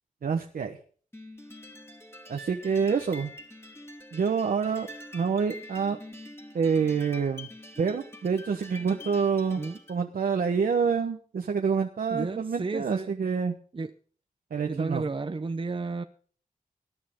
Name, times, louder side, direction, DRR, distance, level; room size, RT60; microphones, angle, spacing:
voice 1, 0.2-0.8 2.3-3.3 4.1-4.9 5.1-6.0 6.5-7.5 7.8-9.6 9.9-13.5 14.5-15.0, right 6 dB, 85° right, 4 dB, 1.1 m, -27 dB
sound 1, 1.1-10.0, left 1 dB, 15° left, 2.7 m, -46 dB
voice 2, 12.1-13.1 13.7-13.9 14.7-16.0, right 3 dB, 35° right, 8 dB, 0.8 m, -32 dB
19.0 x 11.0 x 3.7 m, 0.43 s
wide cardioid pair, 85°, 14 cm